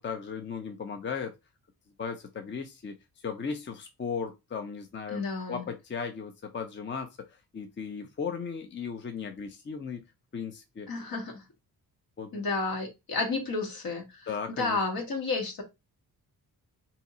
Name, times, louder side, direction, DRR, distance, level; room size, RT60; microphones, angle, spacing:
voice 1, 0.0-1.4 2.0-2.9 3.2-5.2 5.5-7.1 7.5-10.0 10.3-10.9 12.2-12.4 14.3-14.8, left 6 dB, 30° left, 0.5 m, -36 dB
voice 2, 5.1-5.6 10.9-11.4 12.3-15.6, left 3 dB, 65° left, 1.7 m, -31 dB
3.5 x 2.8 x 4.1 m
wide cardioid pair, 125°, 38 cm